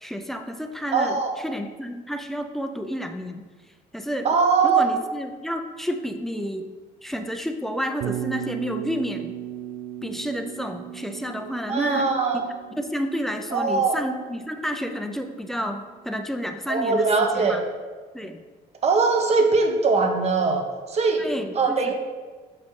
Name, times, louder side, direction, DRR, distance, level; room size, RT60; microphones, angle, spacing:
voice 1, 0.0-3.5 3.9-4.3 4.6-6.7 7.0-9.3 10.0-12.1 12.8-17.6 18.1-18.4 21.2-21.9, equal, ahead, 6 dB, 0.5 m, -30 dB
voice 2, 0.9-1.3 4.2-4.9 11.7-12.4 13.5-14.0 16.7-17.6 18.8-20.6 20.9-21.2 21.5-21.9, right 4 dB, 40° right, 3 dB, 1.0 m, -21 dB
Bass guitar, 8.0-16.1, right 12 dB, 70° right, 0.4 m, -37 dB
6.6 x 5.2 x 3.2 m, 1.4 s
cardioid pair, 110°, 17 cm